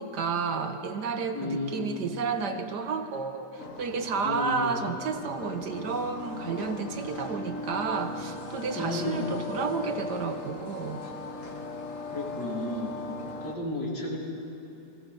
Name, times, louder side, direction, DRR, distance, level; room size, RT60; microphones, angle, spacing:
voice 1, 0.0-11.0, right 5 dB, 75° right, 7 dB, 1.8 m, -31 dB
voice 2, 1.3-1.9 4.2-4.8 8.8-9.3 12.1-13.0 13.4-14.2, left 2 dB, 80° left, -2 dB, 3.9 m, -33 dB
sound 1, 3.6-13.6, left 3 dB, 50° left, 1.9 m, -39 dB
29.0 x 21.0 x 5.4 m, 2.9 s
omnidirectional pair, 1.8 m